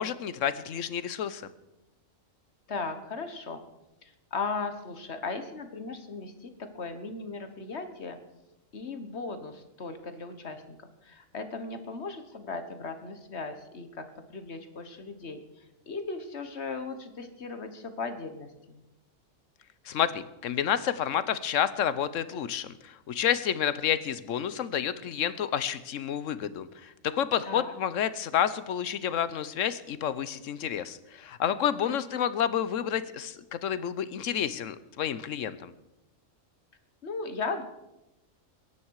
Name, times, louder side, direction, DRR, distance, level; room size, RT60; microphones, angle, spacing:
voice 1, 0.0-1.5 19.8-35.7, left 9 dB, 75° left, 14 dB, 1.1 m, -30 dB
voice 2, 2.7-3.6 4.0-8.2 8.7-18.8 27.4-27.7 31.9-32.0 37.0-37.6, left 4 dB, 55° left, 9 dB, 1.5 m, -37 dB
22.0 x 10.5 x 4.7 m, 0.97 s
omnidirectional pair, 1.3 m